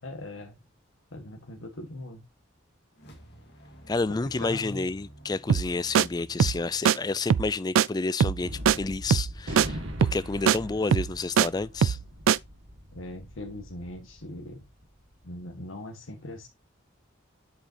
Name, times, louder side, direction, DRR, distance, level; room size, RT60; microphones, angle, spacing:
voice 1, 0.0-0.6 1.1-2.2 4.1-4.9 12.9-14.6 15.2-16.5, left 1 dB, 85° left, 1.6 m, -40 dB
sound 1, 2.9-8.3, right 1 dB, 55° left, 2.4 m, -52 dB
voice 2, 3.9-8.5 8.7-12.0, left 3 dB, 20° left, 0.3 m, -30 dB
sound 2, 5.5-5.7 5.9-6.1 6.4-6.6 6.8-7.0 7.3-7.5 7.8-7.9 8.2-8.4 8.7-8.8 9.1-9.3 9.6-9.7 10.0-10.2 10.5-10.6 10.9-11.5 11.8-12.0 12.3-12.4, right 8 dB, 90° right, 0.4 m, -21 dB
Gunshot gunfire, 8.4-15.0, equal, 70° right, 2.1 m, -41 dB
8.2 x 6.6 x 2.8 m
head